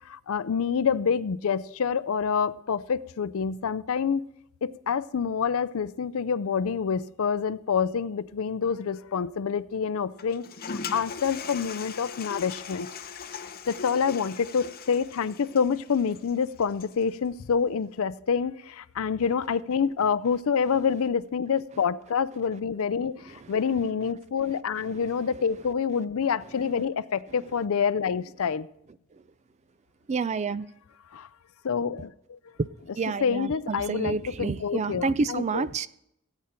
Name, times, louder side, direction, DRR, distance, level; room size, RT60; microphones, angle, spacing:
voice 1, 0.1-4.3 4.6-10.4 10.9-12.9 13.7-28.7 31.1-31.3 31.6-32.4 33.2-35.6, left 6 dB, 65° left, 0.4 m, -27 dB
Toilet flush, 10.2-17.1, left 6 dB, 40° left, 0.8 m, -40 dB
voice 2, 30.1-30.7 32.6-32.7 32.9-35.9, right 4 dB, 30° right, 0.3 m, -29 dB
17.0 x 8.8 x 4.4 m
head